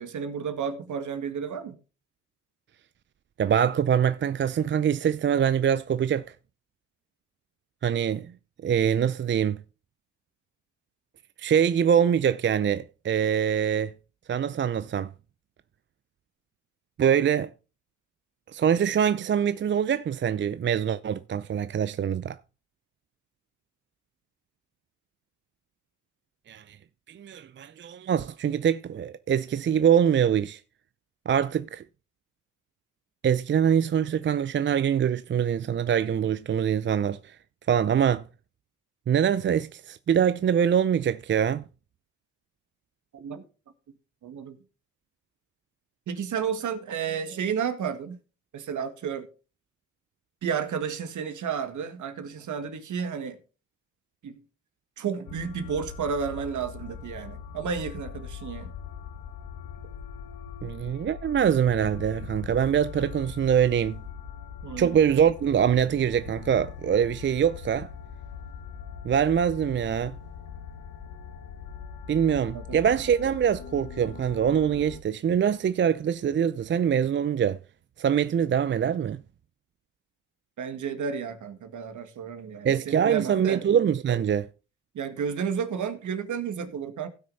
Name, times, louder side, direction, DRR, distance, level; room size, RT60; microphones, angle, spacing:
voice 1, 0.0-1.8 43.1-43.4 44.2-44.6 46.1-48.2 48.5-49.3 50.4-53.4 54.2-54.4 55.0-58.7 64.6-65.0 72.5-72.8 80.6-83.6 84.9-87.1, right 7 dB, 60° right, 2.0 m, -32 dB
voice 2, 3.4-6.2 7.8-8.3 8.6-9.6 11.4-13.9 14.3-15.1 17.0-17.5 18.5-22.4 26.5-26.8 27.1-30.6 31.3-31.8 33.2-37.3 37.7-38.2 39.1-41.6 60.6-64.0 64.8-67.9 69.0-70.2 72.1-77.6 78.0-79.2 82.6-84.5, right 8 dB, 35° right, 0.5 m, -24 dB
sound 1, 55.3-75.0, left 7 dB, 70° left, 1.7 m, -41 dB
16.0 x 6.2 x 4.1 m
supercardioid pair, 65°, 34 cm